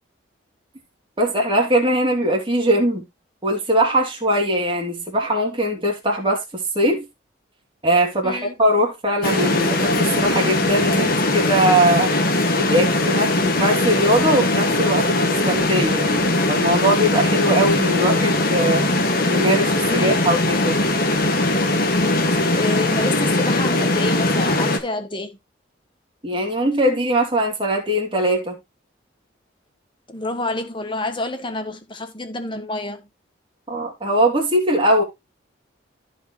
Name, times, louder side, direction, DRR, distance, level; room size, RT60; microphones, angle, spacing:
voice 1, 1.2-3.0 3.4-7.0 7.8-12.1 12.6-18.8 19.3-20.8 26.2-28.6 33.7-35.0, right 1 dB, 25° right, 3.1 m, -21 dB
voice 2, 8.2-8.5 19.9-20.3 22.3-25.3 30.1-33.1, left 2 dB, 25° left, 1.5 m, -28 dB
sound 1, 9.2-24.8, left 2 dB, 50° left, 1.6 m, -20 dB
14.5 x 4.9 x 3.0 m
head